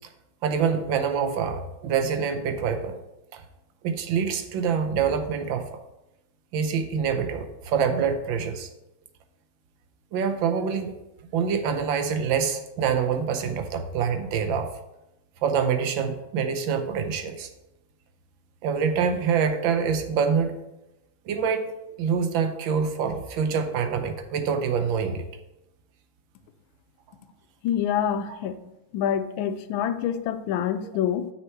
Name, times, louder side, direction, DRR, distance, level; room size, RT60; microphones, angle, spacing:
voice 1, 0.4-3.0 3.3-3.4 3.8-5.7 6.5-8.7 10.1-10.9 11.3-14.7 15.4-17.5 18.6-20.5 21.3-21.7 22.0-25.2 28.3-28.4, right 6 dB, 85° right, 7 dB, 1.5 m, -25 dB
voice 2, 27.6-28.6 28.9-31.3, left 9 dB, 85° left, 11 dB, 1.4 m, -26 dB
6.5 x 5.9 x 4.5 m, 0.92 s
omnidirectional pair, 2.1 m